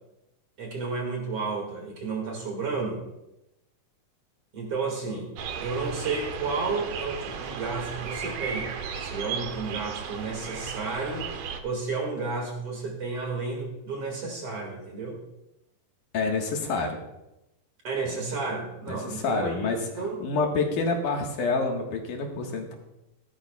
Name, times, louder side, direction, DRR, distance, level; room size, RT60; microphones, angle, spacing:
voice 1, 0.6-3.0 4.5-5.3 5.6-8.7 9.1-11.3 11.6-15.2 17.8-20.2, right 4 dB, 45° right, 0 dB, 2.6 m, -32 dB
sound 1, 5.4-11.6, right 6 dB, 75° right, 1.5 m, -35 dB
voice 2, 16.1-17.0 18.9-22.7, left 3 dB, 65° left, 1 dB, 2.8 m, -28 dB
15.0 x 13.0 x 2.3 m, 0.91 s
omnidirectional pair, 4.1 m